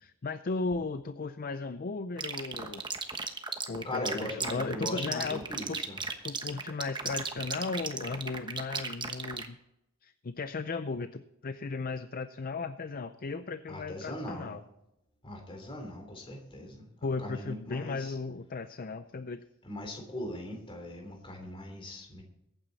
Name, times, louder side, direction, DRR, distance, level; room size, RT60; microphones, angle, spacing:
voice 1, 0.0-2.8 3.7-5.4 5.7-5.8 6.2-9.6 10.0-14.6 17.0-19.4, left 4 dB, 45° left, 11 dB, 0.5 m, -36 dB
sound 1, 2.2-9.5, right 4 dB, 20° right, 1.1 m, -35 dB
voice 2, 3.8-6.0 13.7-14.5 15.2-16.9 17.2-18.1 19.6-22.2, left 1 dB, 25° left, 2 dB, 3.3 m, -39 dB
21.5 x 9.1 x 4.1 m, 0.84 s
head